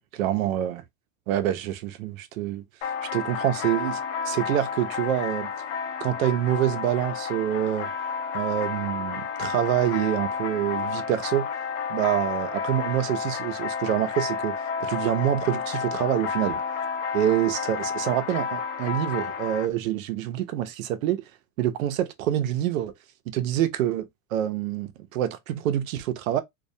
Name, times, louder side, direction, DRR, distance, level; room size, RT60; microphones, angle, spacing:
voice 1, 0.1-0.8 1.3-2.6 3.1-5.5 6.0-7.9 8.3-11.5 11.9-14.5 14.8-16.6 17.1-21.2 21.6-22.9 23.3-26.4, right 12 dB, 70° right, 0.5 m, -26 dB
sound 1, 2.8-19.7, left 6 dB, 60° left, 0.6 m, -31 dB
2.3 x 2.1 x 2.6 m
supercardioid pair, 175°, 41 cm